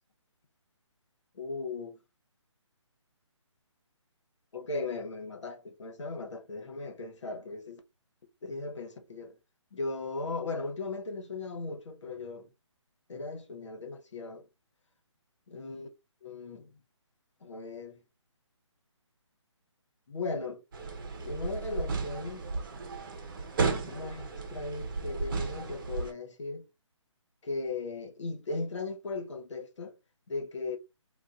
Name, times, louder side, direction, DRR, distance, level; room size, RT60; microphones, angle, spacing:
voice 1, 1.3-2.0 4.5-7.8 8.4-9.4 9.7-12.5 13.1-14.5 15.5-15.9 16.2-16.7 17.4-18.0 20.1-20.6 21.2-22.5 23.8-26.6 27.4-30.0 30.3-30.8, left 3 dB, 65° left, 1.2 m, -37 dB
sound 1, 20.7-26.1, right 4 dB, 45° right, 0.9 m, -34 dB
2.7 x 2.5 x 3.6 m
hypercardioid pair, 160°, 16 cm